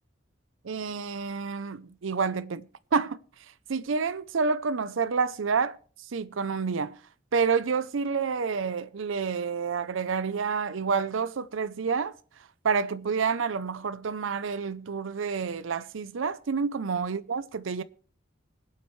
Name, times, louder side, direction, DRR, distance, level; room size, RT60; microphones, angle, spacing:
voice 1, 0.6-2.7 2.9-3.2 3.7-5.8 6.1-7.0 7.3-12.1 12.6-17.8, right 5 dB, 90° right, 0.6 m, -28 dB
25.0 x 8.5 x 3.1 m
head